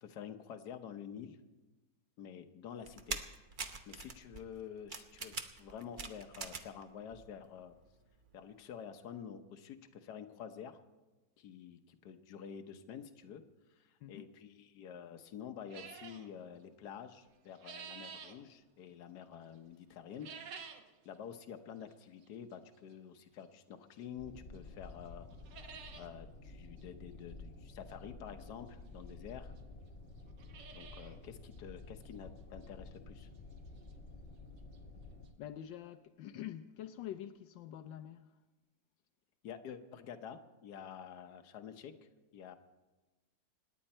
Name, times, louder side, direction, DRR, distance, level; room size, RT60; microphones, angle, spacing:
voice 1, 0.0-1.4 2.2-3.2 3.9-7.7 8.3-10.8 11.4-13.4 13.8-20.3 21.0-25.3 26.0-29.5 30.7-33.3 39.4-42.5, left 8 dB, 65° left, 1.5 m, -49 dB
sound 1, 2.9-6.8 7.1-7.9 8.2-8.3, right 4 dB, 40° right, 0.7 m, -43 dB
voice 2, 14.0-14.3 35.4-38.4, left 11 dB, 85° left, 1.4 m, -46 dB
sound 2, 15.7-16.3 17.2-18.4 20.1-20.9 21.3-21.4 22.2-22.3 24.0-24.1 24.5-24.6 24.9-25.0 25.3-26.1 26.4-26.5 26.8-26.9 28.4-28.5 29.3-29.4 29.6-29.7 30.2-31.2 31.5-31.6 32.1-32.2 32.6-32.7 34.5-34.6 34.7-34.8 35.3-35.4, right 6 dB, 75° right, 1.7 m, -50 dB
sound 3, 24.2-35.3, left 3 dB, 35° left, 1.8 m, -52 dB
26.5 x 10.0 x 4.3 m
omnidirectional pair, 2.0 m